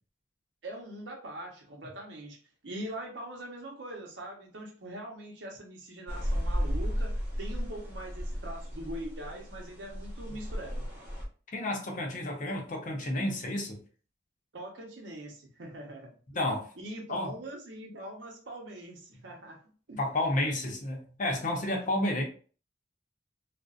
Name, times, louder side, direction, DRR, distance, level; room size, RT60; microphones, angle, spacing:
voice 1, 0.6-2.4 2.6-10.9 14.5-16.2 16.8-20.0, right 1 dB, 85° right, 0.8 m, -42 dB
sound 1, 6.1-11.2, equal, 10° right, 0.7 m, -34 dB
voice 2, 11.5-13.8 16.3-16.7 17.1-17.4 20.0-22.2, left 1 dB, 45° left, 0.6 m, -31 dB
2.5 x 2.1 x 2.3 m
head